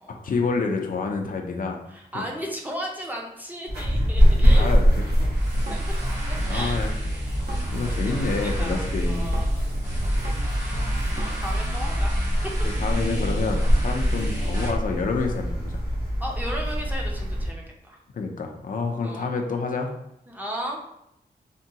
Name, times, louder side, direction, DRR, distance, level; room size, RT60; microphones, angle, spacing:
voice 1, 0.2-1.8 2.1-2.3 4.6-5.1 6.5-6.9 7.7-9.3 12.6-15.8 18.1-19.9, left 4 dB, 55° left, 3 dB, 0.4 m, -28 dB
voice 2, 1.9-4.7 6.3-6.8 7.8-8.3 8.6-10.6 11.4-12.1 16.2-18.0 19.0-19.3 20.3-20.8, equal, 10° right, -1 dB, 0.5 m, -35 dB
sound 1, 3.7-17.5, equal, 85° right, 1.1 m, -24 dB
Drum kit, 5.2-11.7, equal, 65° right, 0.7 m, -37 dB
sound 2, 5.3-14.7, right 1 dB, 45° right, 1.3 m, -32 dB
3.5 x 2.2 x 2.7 m, 0.81 s
wide cardioid pair, 140°, 17 cm